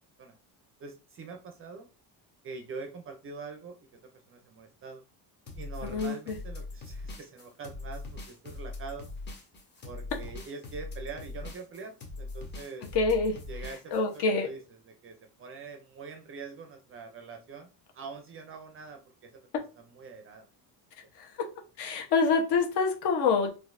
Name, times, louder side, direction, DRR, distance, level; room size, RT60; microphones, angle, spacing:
voice 1, 0.8-1.9 2.4-3.8 4.3-5.0 5.6-9.1 9.8-12.9 13.5-13.9 14.4-14.6 15.0-19.5 19.8-20.5, right 4 dB, 30° right, 4 dB, 0.4 m, -44 dB
sound 1, 5.5-14.2, left 3 dB, 25° left, 0.6 m, -41 dB
voice 2, 5.8-6.4 12.9-13.4 13.9-14.5 21.2-21.3 21.8-23.5, left 4 dB, 65° left, 2 dB, 1.0 m, -26 dB
3.8 x 2.5 x 2.5 m, 0.33 s
cardioid pair, 175°, 43 cm